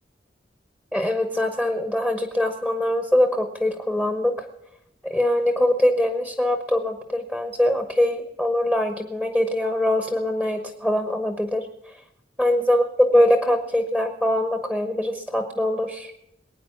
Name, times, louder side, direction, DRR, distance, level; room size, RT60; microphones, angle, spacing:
voice 1, 0.9-4.5 5.1-11.7 12.4-12.8 13.1-16.1, left 1 dB, 5° left, 6 dB, 1.1 m, -23 dB
21.0 x 9.5 x 5.9 m, 0.84 s
head